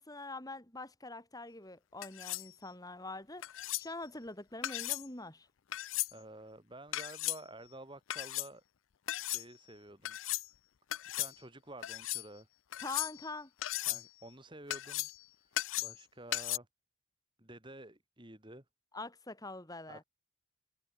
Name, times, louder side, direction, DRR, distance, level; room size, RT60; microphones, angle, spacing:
voice 1, 0.0-3.4 3.8-5.5 12.8-13.5 18.9-20.0, left 2 dB, 15° left, 2.4 m, -44 dB
sound 1, 2.0-2.5 3.4-3.9 4.6-5.1 5.7-6.1 6.9-7.4 8.1-8.5 9.1-9.4 10.0-10.5 10.9-11.3 11.8-12.2 12.7-13.3 13.6-14.1 14.7-15.2 15.6-16.0 16.3-16.6, left 16 dB, 65° left, 0.4 m, -36 dB
voice 2, 6.1-8.6 9.2-10.2 11.2-12.5 13.9-15.1 15.4-16.7 17.4-18.6 19.9-20.0, right 1 dB, 20° right, 3.5 m, -51 dB
head